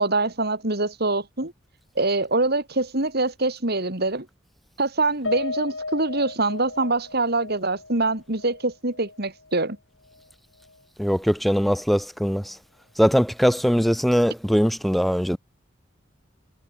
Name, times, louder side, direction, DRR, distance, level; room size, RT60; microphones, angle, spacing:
voice 1, 0.0-1.5 2.0-4.3 4.8-9.8, right 2 dB, 55° right, 4.0 m, -24 dB
Piano, 5.2-9.7 10.1-10.2 10.6-10.8, left 3 dB, 70° left, 5.4 m, -35 dB
voice 2, 11.0-12.6 13.0-15.4, equal, ahead, 1.3 m, -21 dB
head